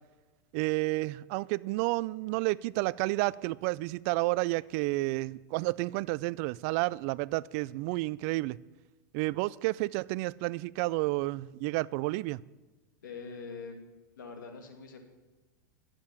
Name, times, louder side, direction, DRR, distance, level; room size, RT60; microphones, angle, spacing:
voice 1, 0.5-8.6 9.1-12.4, right 21 dB, 50° right, 0.3 m, -31 dB
voice 2, 13.0-13.8 14.2-15.0, left 4 dB, 85° left, 2.4 m, -43 dB
11.0 x 7.5 x 9.2 m
hypercardioid pair, 115°, 10 cm